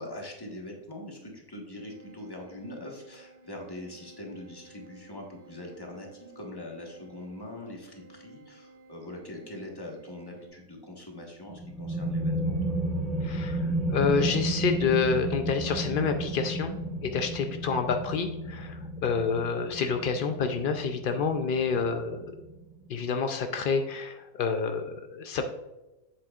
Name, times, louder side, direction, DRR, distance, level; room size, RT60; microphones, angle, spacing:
voice 1, 0.0-12.7, left 1 dB, 15° left, 0 dB, 1.3 m, -42 dB
sound 1, 1.7-10.5, right 4 dB, 50° right, 2.1 m, -54 dB
sound 2, 11.5-22.9, right 1 dB, ahead, 0.9 m, -32 dB
voice 2, 13.2-16.8 17.0-22.3 22.9-25.4, left 5 dB, 80° left, 6 dB, 0.4 m, -28 dB
7.7 x 7.1 x 2.4 m, 1.0 s
omnidirectional pair, 1.6 m